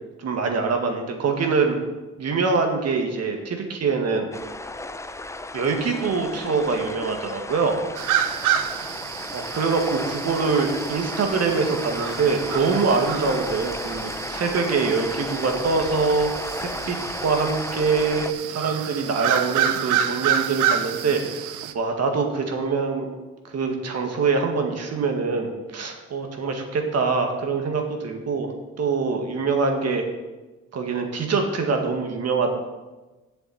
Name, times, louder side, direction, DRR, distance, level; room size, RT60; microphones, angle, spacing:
voice 1, 0.2-1.8 2.2-4.3 5.5-7.8 9.3-16.3 16.6-17.0 17.2-21.2 21.7-23.1 23.5-30.0 30.7-32.5, right 4 dB, 55° right, 4 dB, 2.0 m, -24 dB
sound 1, 4.3-18.3, left 2 dB, 10° left, 0.6 m, -34 dB
sound 2, 7.9-21.7, right 9 dB, 90° right, 0.7 m, -29 dB
7.8 x 7.1 x 8.4 m, 1.2 s
cardioid pair, 90°, 30 cm